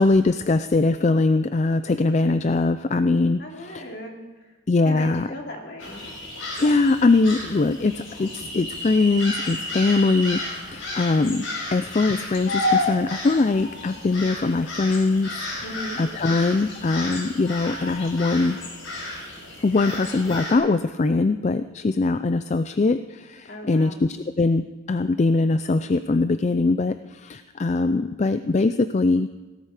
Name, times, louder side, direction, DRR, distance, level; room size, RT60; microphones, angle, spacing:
voice 1, 0.0-3.4 3.7-3.8 4.7-5.3 6.5-15.3 16.0-18.6 19.6-29.3, left 3 dB, 35° left, 11 dB, 0.3 m, -22 dB
voice 2, 3.4-4.5 4.8-6.1 15.6-16.0 19.8-20.1 23.4-24.0, equal, 55° left, 0 dB, 2.7 m, -37 dB
sound 1, 5.8-20.5, left 2 dB, 80° left, 4.6 m, -31 dB
17.5 x 12.5 x 4.9 m, 1.3 s
head